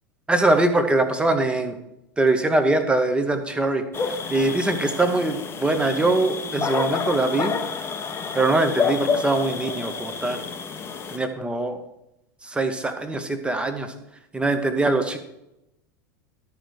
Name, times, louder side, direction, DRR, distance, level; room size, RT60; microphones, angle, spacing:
voice 1, 0.3-1.8 2.2-7.5 8.3-10.4 11.1-11.8 12.4-13.9 14.3-15.2, right 2 dB, 10° right, 7 dB, 1.2 m, -22 dB
sound 1, 3.9-11.2, left 5 dB, 25° left, 1.0 m, -29 dB
13.0 x 5.1 x 6.4 m, 0.87 s
figure-of-eight pair, 85°, 10 cm